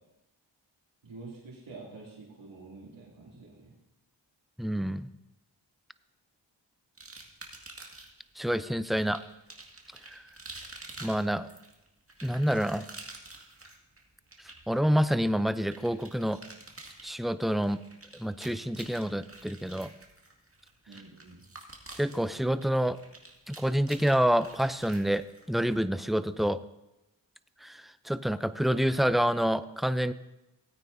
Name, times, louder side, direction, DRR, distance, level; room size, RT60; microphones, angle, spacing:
voice 1, 1.0-3.7 20.9-21.4, right 3 dB, 80° right, -7 dB, 2.8 m, -47 dB
voice 2, 4.6-5.1 8.4-9.2 10.1-10.2 11.0-11.5 12.2-12.8 14.7-16.4 17.0-17.8 18.1-19.9 21.9-23.0 23.5-26.6 27.6-30.1, equal, ahead, 14 dB, 0.4 m, -27 dB
sound 1, 7.0-8.2 8.9-25.8, right 2 dB, 30° right, 2.0 m, -49 dB
17.0 x 9.0 x 2.6 m, 0.94 s
cardioid pair, 40°, 46 cm